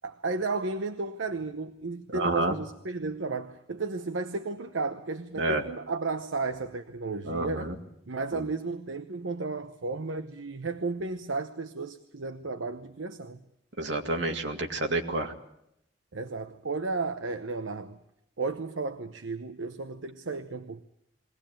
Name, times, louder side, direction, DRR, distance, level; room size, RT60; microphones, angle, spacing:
voice 1, 0.0-7.7 8.1-13.4 16.1-18.0 18.4-20.8, right 3 dB, 85° right, 0.9 m, -33 dB
voice 2, 2.1-2.5 5.4-5.6 7.2-7.8 8.3-8.4 13.8-15.3, right 2 dB, 70° right, 2.1 m, -29 dB
22.0 x 18.0 x 9.0 m
head